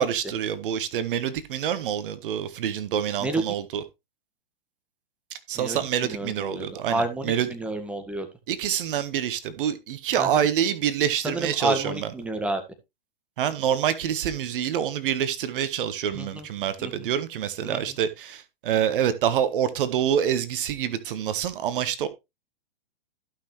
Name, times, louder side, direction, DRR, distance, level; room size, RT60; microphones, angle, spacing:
voice 1, 0.0-3.8 5.5-7.5 8.5-12.1 13.4-22.1, right 9 dB, 60° right, 1.4 m, -26 dB
voice 2, 5.6-8.3 10.2-10.5 11.2-12.6 16.1-16.5 16.8-17.1 17.6-17.8, right 2 dB, 5° right, 1.8 m, -30 dB
14.5 x 6.0 x 3.3 m
hypercardioid pair, 130°, 31 cm